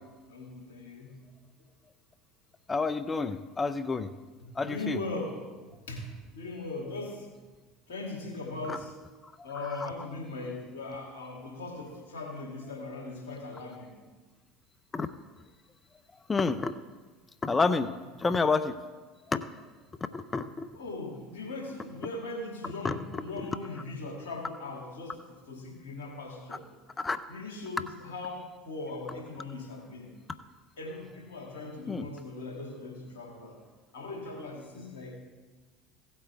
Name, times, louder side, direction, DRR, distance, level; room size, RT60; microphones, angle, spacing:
voice 1, 0.3-1.2 4.4-7.3 7.9-9.0 9.4-14.0 20.7-26.7 27.3-30.1 30.8-33.6 33.9-35.2, left 2 dB, 80° left, 0 dB, 2.7 m, -39 dB
voice 2, 2.7-4.1 4.6-5.0 8.7-8.8 9.6-9.8 14.9-15.1 16.3-16.7 17.4-17.9 18.2-18.8 19.3-19.4 20.0-20.7 22.8-23.0 27.0-27.2 31.9-32.1, left 4 dB, 20° left, 12 dB, 0.6 m, -29 dB
16.5 x 8.6 x 3.5 m, 1.3 s
hypercardioid pair, 75°, 0 cm